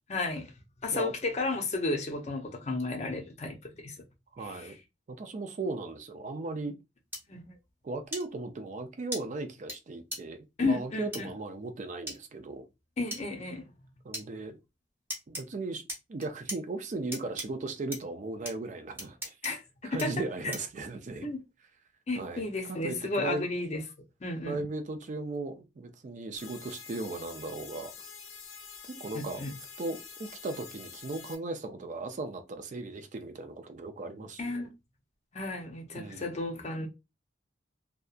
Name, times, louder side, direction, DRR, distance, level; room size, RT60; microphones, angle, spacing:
voice 1, 0.1-0.5 0.8-4.0 4.4-4.7 7.3-7.4 10.6-11.3 13.0-13.6 19.4-20.1 20.4-20.5 21.2-21.4 22.1-23.8 24.2-24.5 29.1-29.5 34.4-34.7 35.3-36.9, left 2 dB, 35° left, 0.5 m, -33 dB
voice 2, 4.3-4.8 5.1-6.8 7.8-12.6 14.0-14.6 15.3-15.8 16.1-19.4 19.8-21.3 22.2-23.5 24.4-27.9 29.0-29.4 29.8-34.7 36.0-36.4, right 3 dB, 40° right, 0.4 m, -37 dB
sound 1, 7.1-7.2 8.1-8.2 9.1-9.2 9.7-9.8 10.1-10.2 11.1-11.2 12.1-12.2 13.1-13.2 14.1-14.3 15.1-15.4 15.9-16.6 17.1-17.5 17.9-18.0 18.5-18.6 19.0-19.5 20.0-20.1 20.5-20.7, equal, 10° right, 0.8 m, -37 dB
sound 2, 26.4-31.4, left 6 dB, 85° left, 0.6 m, -47 dB
2.7 x 2.3 x 2.4 m
head